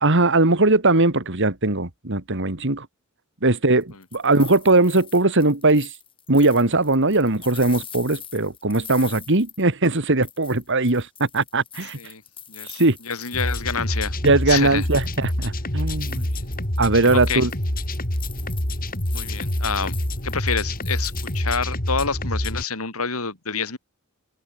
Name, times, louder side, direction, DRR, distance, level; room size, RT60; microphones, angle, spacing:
voice 1, 0.0-2.9 3.4-5.9 6.3-12.0 12.7-13.0 14.2-16.2 16.8-17.5, right 2 dB, 60° right, 2.5 m, -20 dB
sound 1, 3.8-10.0 10.2-14.0 14.3-15.4 15.8-21.9, left 8 dB, 25° left, 7.4 m, -43 dB
voice 2, 12.5-14.2 14.5-14.9 16.1-16.5 17.1-17.4 19.1-20.0 20.2-23.8, left 5 dB, 85° left, 3.9 m, -28 dB
sound 2, 13.3-22.6, left 1 dB, 45° left, 4.8 m, -27 dB
open air
head